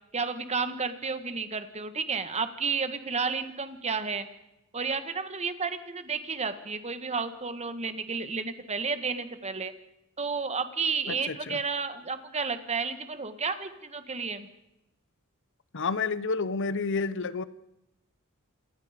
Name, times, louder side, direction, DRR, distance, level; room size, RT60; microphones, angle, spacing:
voice 1, 0.1-4.3 4.7-9.7 10.2-14.5, right 5 dB, 30° right, 10 dB, 1.6 m, -32 dB
voice 2, 11.1-11.6 15.7-17.4, left 4 dB, 60° left, 16 dB, 0.9 m, -30 dB
28.0 x 18.5 x 5.2 m, 0.88 s
head